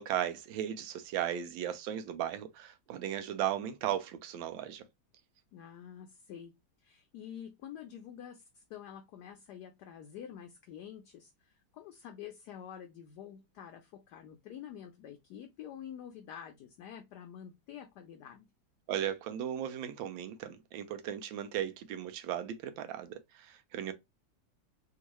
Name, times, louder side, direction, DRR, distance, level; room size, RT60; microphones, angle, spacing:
voice 1, 0.0-4.8 18.9-23.9, right 10 dB, 85° right, 1.3 m, -36 dB
voice 2, 5.5-6.5 6.8-18.5, left 9 dB, 70° left, 1.0 m, -48 dB
3.6 x 2.4 x 2.9 m
omnidirectional pair, 2.1 m